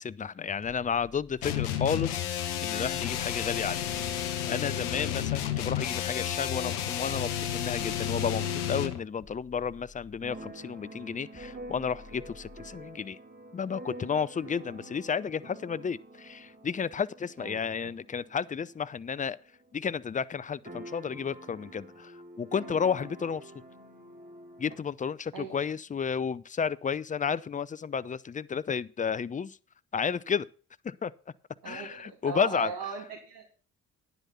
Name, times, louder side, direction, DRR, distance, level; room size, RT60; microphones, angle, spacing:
voice 1, 0.0-3.9 4.4-13.2 13.5-19.4 19.7-23.5 24.6-29.6 29.9-30.5 30.8-31.1 31.6-32.7, left 6 dB, 20° left, 0.5 m, -32 dB
sound 1, 1.4-9.0, left 10 dB, 85° left, 1.0 m, -31 dB
Keyboard (musical), 10.2-19.8 20.0-20.1 20.3-24.8, right 1 dB, 20° right, 3.5 m, -47 dB
sound 2, 10.6-10.7 11.3-12.9, left 5 dB, 35° left, 2.5 m, -53 dB
voice 2, 17.4-17.9 25.3-25.6 31.6-33.4, right 6 dB, 55° right, 2.6 m, -39 dB
9.9 x 8.1 x 5.6 m
hypercardioid pair, 45°, 43 cm